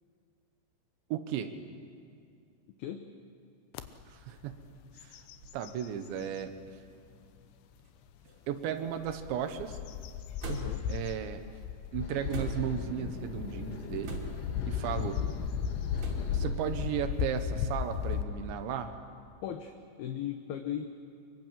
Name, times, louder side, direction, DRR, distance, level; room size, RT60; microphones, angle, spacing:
voice 1, 1.1-1.5 4.1-4.6 5.5-6.5 8.5-9.8 10.9-11.4 11.9-14.2 14.7-15.2 16.3-19.0, right 9 dB, 85° right, 8 dB, 3.4 m, -35 dB
sound 1, 3.8-3.9 4.4-4.6 5.0-6.5 7.1-7.2 8.9-18.2, left 8 dB, 90° left, 3.2 m, -35 dB
sound 2, 5.2-5.6 6.4-6.5 7.8-8.0 8.3-8.8 10.4-11.0 12.3-12.8 14.0-14.6 16.0-16.4, right 4 dB, 70° right, 5.0 m, -42 dB
voice 2, 10.4-10.9 19.4-20.9, left 10 dB, 70° left, 6 dB, 2.5 m, -37 dB
Berlin Urban Sounds - Tram and Cars, 12.0-18.9, left 3 dB, 50° left, 2.2 m, -46 dB
24.5 x 23.0 x 7.6 m, 2.4 s
omnidirectional pair, 5.1 m